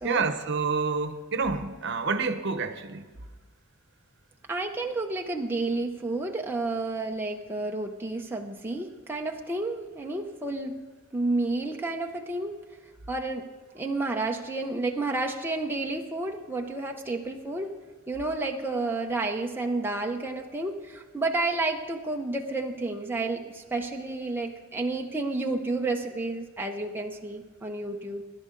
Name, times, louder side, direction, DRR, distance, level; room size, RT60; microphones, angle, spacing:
voice 1, 0.0-3.1, right 4 dB, 55° right, 0.9 m, -28 dB
voice 2, 4.5-10.8 11.1-12.6 13.1-13.4 13.7-17.8 18.1-28.2, right 2 dB, 10° right, 0.7 m, -30 dB
22.5 x 11.5 x 3.9 m
head